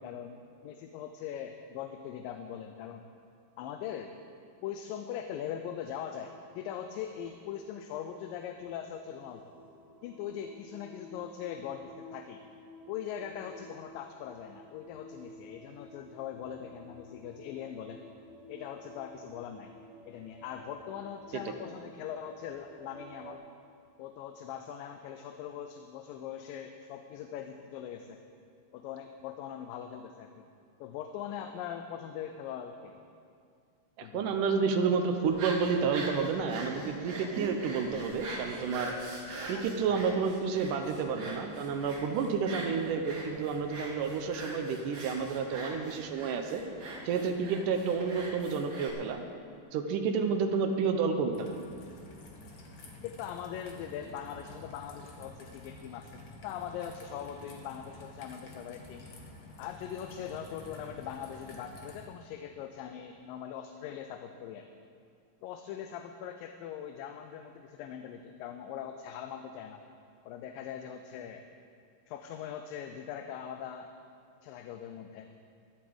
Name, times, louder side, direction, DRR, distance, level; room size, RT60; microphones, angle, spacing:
voice 1, 0.0-3.0 3.6-4.2 4.6-9.5 10.0-12.4 12.9-18.0 18.5-19.7 20.1-23.4 24.0-28.2 28.7-30.5 30.8-33.1 34.0-34.3 39.4-39.6 39.9-40.2 53.0-59.1 59.6-64.7 65.4-69.8 70.3-71.5 72.1-73.9 74.4-75.3, left 9 dB, 80° left, 6 dB, 2.3 m, -41 dB
sound 1, 5.3-23.3, equal, ahead, 1.8 m, -53 dB
voice 2, 34.0-38.9 39.5-46.6 47.0-49.2 49.7-51.5, right 5 dB, 75° right, 5 dB, 2.3 m, -30 dB
sound 2, 35.2-48.9, right 2 dB, 45° right, 3.3 m, -43 dB
Raindrop / Trickle dribble, 51.3-62.1, left 2 dB, 50° left, 1.4 m, -50 dB
14.0 x 8.1 x 8.7 m, 2.3 s
omnidirectional pair, 4.0 m